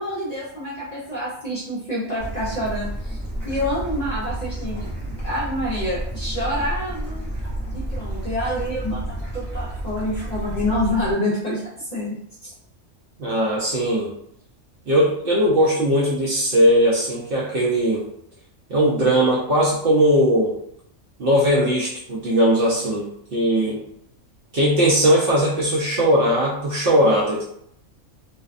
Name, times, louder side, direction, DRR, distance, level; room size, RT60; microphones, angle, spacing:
voice 1, 0.0-4.9 5.2-7.2 7.7-12.2 12.4-12.5, left 1 dB, 45° left, -8 dB, 0.6 m, -27 dB
Bird / Stream, 2.2-11.1, right 1 dB, ahead, 0.6 m, -30 dB
voice 2, 13.2-14.1 14.9-18.1 18.7-20.6 21.2-23.8 24.5-27.4, equal, 55° right, -5 dB, 0.7 m, -19 dB
2.6 x 2.2 x 2.4 m, 0.70 s
omnidirectional pair, 1.3 m